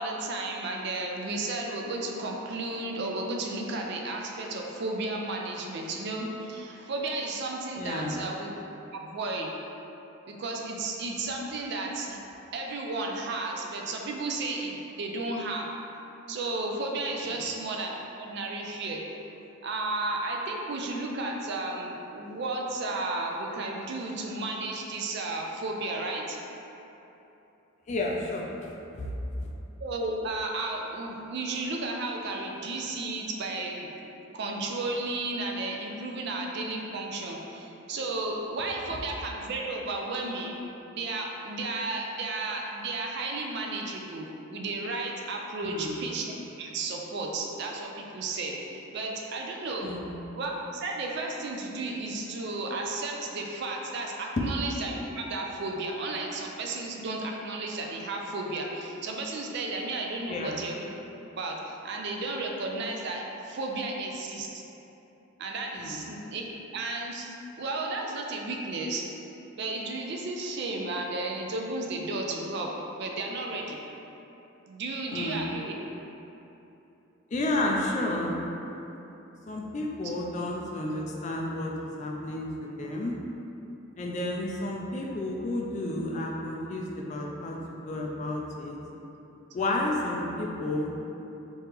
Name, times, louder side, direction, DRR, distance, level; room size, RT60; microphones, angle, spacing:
voice 1, 0.0-8.5 8.9-9.5 10.3-12.2 12.5-15.7 16.3-17.9 18.2-19.0 19.6-26.4 29.8-33.9 34.3-40.6 40.9-49.9 50.4-60.9 61.4-64.6 65.4-66.5 66.7-69.0 69.6-72.7 73.0-73.8 74.7-75.8, right 2 dB, 55° right, 0 dB, 0.4 m, -33 dB
voice 2, 7.8-8.1 17.3-17.4 27.9-29.1 29.4-29.5 45.6-46.0 49.8-50.1 54.4-54.5 60.3-60.6 65.7-66.0 75.1-75.5 77.3-78.4 79.5-83.2 84.0-87.6 87.9-88.8 89.5-90.9, left 1 dB, 35° left, -1 dB, 0.3 m, -31 dB
3.1 x 2.8 x 3.4 m, 3.0 s
head